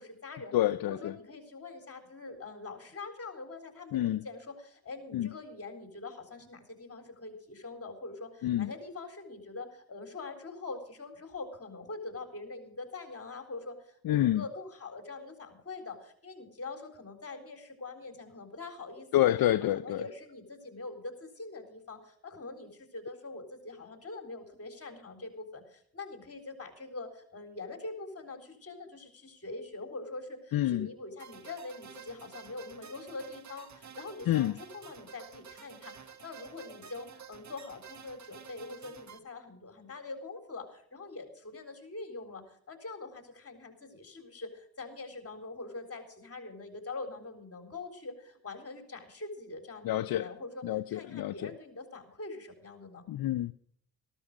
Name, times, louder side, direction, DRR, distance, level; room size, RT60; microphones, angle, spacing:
voice 1, 0.0-0.5 0.9-19.3 19.7-53.0, left 3 dB, 40° left, 4.0 m, -44 dB
voice 2, 0.5-1.1 3.9-4.2 5.1-5.3 8.4-8.7 14.0-14.4 19.1-20.0 30.5-30.9 34.3-34.6 49.8-50.3 50.6-51.5 53.1-53.5, left 13 dB, 70° left, 0.6 m, -28 dB
sound 1, 31.2-39.2, right 7 dB, 50° right, 1.6 m, -51 dB
14.5 x 12.5 x 4.9 m
cardioid pair, 65°, 37 cm